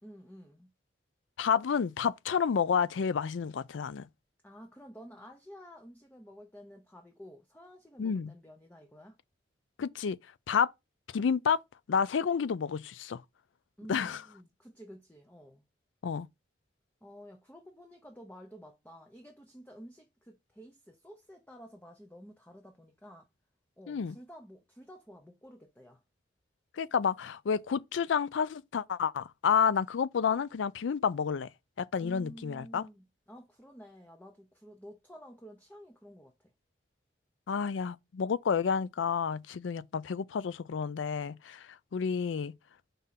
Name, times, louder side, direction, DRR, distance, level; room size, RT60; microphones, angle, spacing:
voice 1, 0.0-0.7 4.4-9.2 13.8-15.6 17.0-23.3 23.8-26.0 32.0-36.5, equal, 10° left, 0.7 m, -51 dB
voice 2, 1.4-4.0 8.0-8.3 9.8-10.2 10.5-10.7 11.1-11.6 11.9-13.2 13.9-14.2 16.0-16.3 23.9-24.2 26.8-31.5 31.8-32.8 37.5-41.7 41.9-42.5, left 6 dB, 90° left, 0.4 m, -30 dB
5.4 x 3.7 x 5.7 m
head